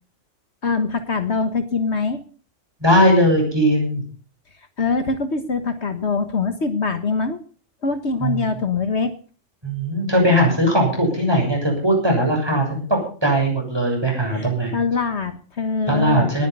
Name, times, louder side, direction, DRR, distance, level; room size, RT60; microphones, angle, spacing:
voice 1, 0.6-2.2 4.8-7.4 7.8-9.1 14.3-16.3, left 4 dB, 60° left, 9 dB, 1.6 m, -23 dB
voice 2, 2.8-4.0 8.2-8.5 9.6-14.7 15.9-16.5, equal, 20° right, 0 dB, 7.3 m, -19 dB
19.0 x 10.5 x 5.4 m, 0.40 s
omnidirectional pair, 1.3 m